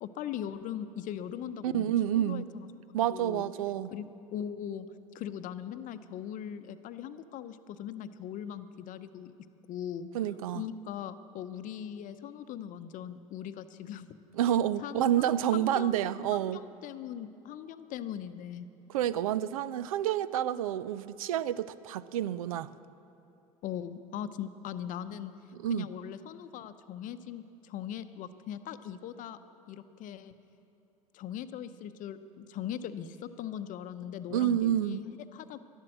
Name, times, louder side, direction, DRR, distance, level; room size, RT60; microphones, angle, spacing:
voice 1, 0.0-1.9 2.1-3.5 3.9-4.9 5.1-9.3 9.7-10.1 10.5-14.1 14.8-18.7 23.6-25.3 25.7-29.4 29.7-30.3 31.1-35.6, left 9 dB, 45° left, 0.7 m, -40 dB
voice 2, 1.6-2.5 2.9-3.9 10.1-10.6 14.4-16.6 18.9-22.7 25.6-25.9 34.3-35.0, right 11 dB, 75° right, 0.4 m, -29 dB
12.0 x 11.5 x 7.4 m
hypercardioid pair, 70°, 18 cm